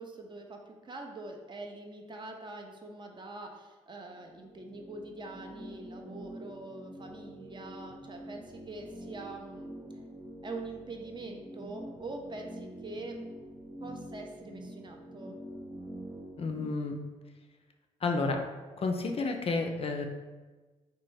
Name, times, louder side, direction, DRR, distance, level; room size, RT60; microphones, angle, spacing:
voice 1, 0.0-9.7 10.4-13.2 13.8-15.4, right 2 dB, 30° right, 2 dB, 0.5 m, -44 dB
sound 1, 4.2-16.7, right 1 dB, 60° right, 1.1 m, -46 dB
voice 2, 16.4-17.0 18.0-18.4 18.8-20.0, left 3 dB, 40° left, 4 dB, 0.4 m, -31 dB
2.9 x 2.2 x 3.1 m, 1.3 s
hypercardioid pair, 45°, 16 cm